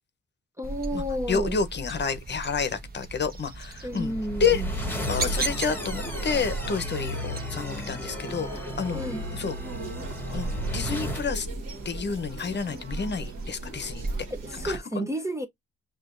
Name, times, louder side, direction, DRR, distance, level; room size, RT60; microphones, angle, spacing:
voice 1, 0.6-1.6 3.8-4.7 8.9-9.2 14.3-15.5, equal, 10° right, 0.5 m, -31 dB
sound 1, 0.6-14.8, right 3 dB, 30° right, 1.1 m, -37 dB
voice 2, 1.3-4.1 4.4-4.6 5.1-9.0 9.3-9.5 10.3-11.5 11.8-14.0 14.5-15.1, left 5 dB, 35° left, 0.8 m, -29 dB
sound 2, 3.9-11.3, equal, 5° left, 1.2 m, -33 dB
sound 3, 4.7-14.8, right 2 dB, 55° right, 1.6 m, -42 dB
6.0 x 2.5 x 2.5 m
cardioid pair, 90°, 30 cm